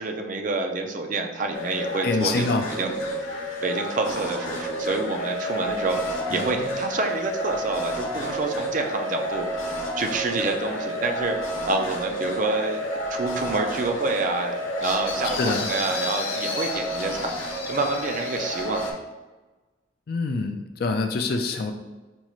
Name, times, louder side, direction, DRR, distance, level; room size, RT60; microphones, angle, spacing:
voice 1, 0.0-2.9 3.2-11.4 11.6-12.8 13.1-14.5 14.8-18.9, right 3 dB, 40° right, 4 dB, 0.4 m, -28 dB
sound 1, 1.5-18.9, equal, 90° left, 0.8 m, -30 dB
voice 2, 2.0-2.7 6.3-6.6 15.4-15.7 20.1-21.7, left 3 dB, 50° left, 6 dB, 0.3 m, -25 dB
5.2 x 2.4 x 3.0 m, 1.2 s
head